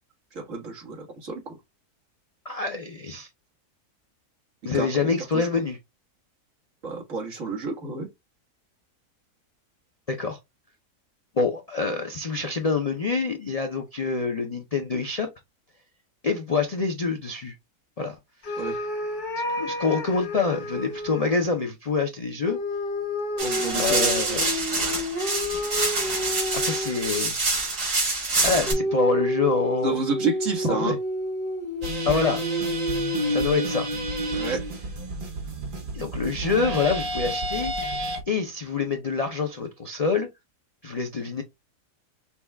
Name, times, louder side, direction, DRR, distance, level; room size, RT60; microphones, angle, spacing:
voice 1, 0.3-1.5 4.7-5.1 6.8-8.1 18.6-18.7 23.4-24.1 29.8-31.0 34.3-34.6, right 3 dB, 55° right, 1.8 m, -29 dB
voice 2, 2.5-3.3 4.6-5.8 10.1-10.4 11.4-15.3 16.2-17.5 18.0-18.2 18.5-18.6 19.6-22.6 23.7-24.4 26.5-27.4 28.4-30.0 30.7-31.0 32.0-32.4 33.3-33.9 35.9-37.7 38.3-40.3 40.8-41.4, left 4 dB, 75° left, 0.3 m, -26 dB
sound 1, 18.4-21.4 22.5-27.2 28.7-34.8, left 1 dB, 40° left, 0.9 m, -30 dB
sound 2, 23.4-28.7, right 3 dB, 85° right, 2.9 m, -26 dB
sound 3, 31.8-38.2, right 2 dB, 40° right, 1.0 m, -32 dB
5.8 x 2.3 x 3.3 m
omnidirectional pair, 1.6 m